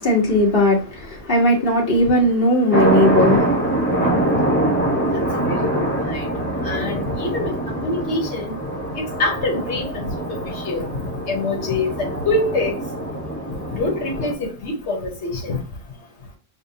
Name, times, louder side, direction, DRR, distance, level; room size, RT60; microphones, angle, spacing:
voice 1, 0.0-3.6, left 1 dB, 55° left, 1.5 m, -18 dB
sound 1, 2.7-14.3, right 1 dB, 10° left, 1.1 m, -23 dB
voice 2, 5.1-5.7 6.1-6.3 6.6-8.6 8.9-10.4 10.6-10.9 11.3-12.8 13.7-15.6, left 2 dB, 85° left, 1.3 m, -25 dB
6.6 x 2.3 x 2.7 m
omnidirectional pair, 1.1 m